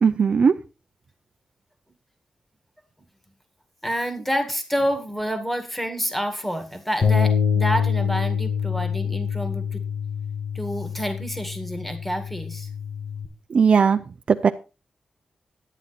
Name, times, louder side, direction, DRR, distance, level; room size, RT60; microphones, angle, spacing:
voice 1, 0.0-0.5 13.5-14.0 14.3-14.5, right 6 dB, 55° right, 7 dB, 0.5 m, -17 dB
voice 2, 3.8-9.8 10.5-12.7, equal, 5° left, 7 dB, 2.0 m, -28 dB
Bass guitar, 7.0-13.3, left 7 dB, 60° left, 1.7 m, -25 dB
11.0 x 9.2 x 4.2 m, 0.31 s
wide cardioid pair, 110°, 2 cm